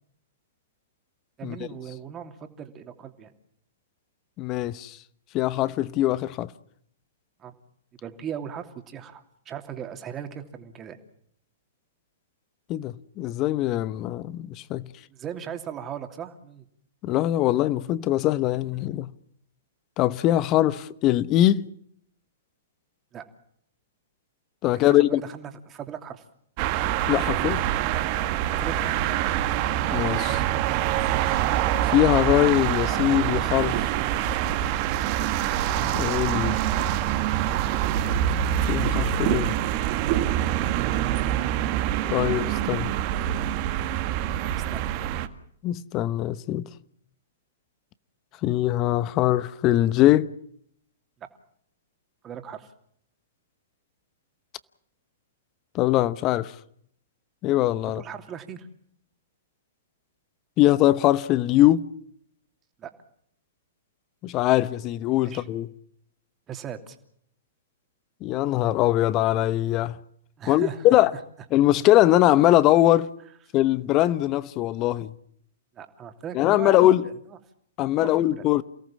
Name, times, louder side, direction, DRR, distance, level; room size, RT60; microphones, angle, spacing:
voice 1, 1.4-3.3 7.4-7.5 8.0-11.0 15.1-16.6 23.1-23.3 24.8-26.2 28.4-29.0 44.7-45.1 52.2-52.7 57.9-58.7 62.8-62.9 65.2-65.5 66.5-67.0 70.4-71.2 75.7-77.1 78.0-78.1 78.4-78.5, right 8 dB, 25° right, 2.9 m, -38 dB
voice 2, 4.4-5.0 5.3-6.5 12.7-14.9 17.0-19.1 20.0-21.7 24.6-25.2 27.1-27.6 29.9-30.4 31.8-33.8 35.9-36.6 38.7-39.5 42.1-42.9 45.6-46.7 48.4-50.3 55.7-56.5 57.4-58.0 60.6-61.8 64.2-65.7 68.2-70.0 70.5-71.1 71.5-73.1 73.5-75.1 76.3-77.0 77.8-78.6, left 14 dB, 35° left, 1.0 m, -22 dB
sound 1, 26.6-45.3, right 11 dB, 40° right, 1.7 m, -25 dB
29.0 x 18.0 x 7.3 m
figure-of-eight pair, 110°, 0 cm